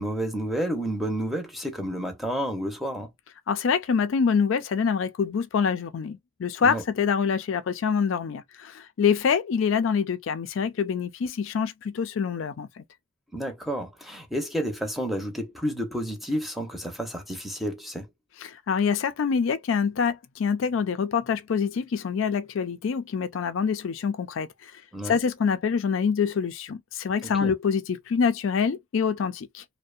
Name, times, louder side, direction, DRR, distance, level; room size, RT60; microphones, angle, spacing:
voice 1, 0.0-3.1 6.6-6.8 13.3-18.1 24.9-25.2 27.2-27.5, equal, ahead, 0.7 m, -30 dB
voice 2, 3.5-12.8 18.4-24.7 25.0-29.6, left 6 dB, 70° left, 0.4 m, -26 dB
2.6 x 2.1 x 2.4 m
head